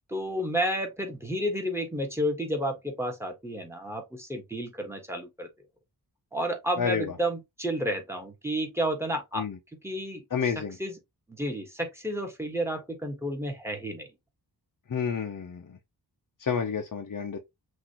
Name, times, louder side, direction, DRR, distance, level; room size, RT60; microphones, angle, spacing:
voice 1, 0.1-5.5 6.3-9.5 9.8-10.2 10.8-10.9 11.3-14.1, equal, 5° right, 1.3 m, -31 dB
voice 2, 6.8-7.1 9.4-9.6 10.3-10.8 14.9-15.8 16.4-17.4, left 6 dB, 50° left, 0.7 m, -30 dB
5.9 x 2.7 x 2.9 m
wide cardioid pair, 95°, 41 cm